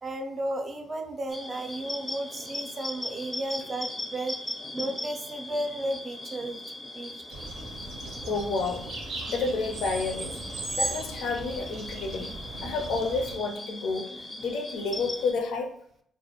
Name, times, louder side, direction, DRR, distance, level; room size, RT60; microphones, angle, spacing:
voice 1, 0.0-4.3 4.7-6.6 6.9-7.2, right 1 dB, 35° right, 5 dB, 0.4 m, -33 dB
sound 1, 1.3-15.3, left 1 dB, 20° left, 0.4 m, -39 dB
sound 2, 7.3-13.4, right 2 dB, 80° right, 0.6 m, -37 dB
voice 2, 8.2-8.8 9.3-10.4 10.8-12.3 12.6-14.1 14.4-15.7, left 4 dB, 80° left, 2 dB, 0.4 m, -30 dB
2.3 x 2.1 x 2.8 m, 0.65 s
cardioid pair, 90°, 0 cm